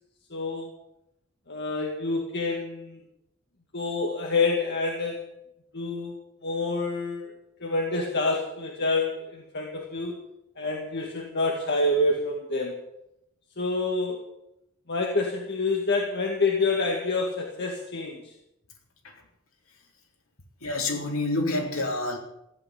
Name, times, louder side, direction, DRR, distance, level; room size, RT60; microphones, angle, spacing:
voice 1, 0.3-0.7 1.5-3.0 3.7-5.3 5.7-6.2 6.4-7.3 7.6-10.2 10.6-12.8 13.6-14.2 14.9-18.3, left 3 dB, 55° left, 0 dB, 2.1 m, -27 dB
voice 2, 20.6-22.2, left 2 dB, 70° left, 1 dB, 3.9 m, -28 dB
15.0 x 9.3 x 9.9 m, 0.84 s
head